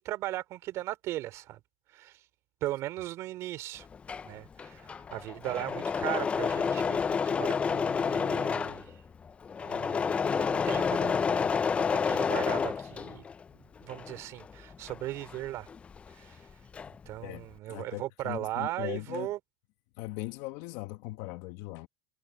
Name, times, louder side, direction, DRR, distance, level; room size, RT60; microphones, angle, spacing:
voice 1, 0.0-1.6 1.9-2.2 2.6-3.9 4.2-9.0 9.6-11.5 11.8-13.2 13.5-15.7 16.2-16.4 17.1-19.4, right 15 dB, 50° right, 2.9 m, -38 dB
Engine / Mechanisms, 3.8-13.4 13.8-16.1 16.4-17.1, left 6 dB, 20° left, 0.4 m, -30 dB
voice 2, 17.2-19.3 20.0-21.9, left 19 dB, 65° left, 1.8 m, -39 dB
supercardioid pair, 140°, 7 cm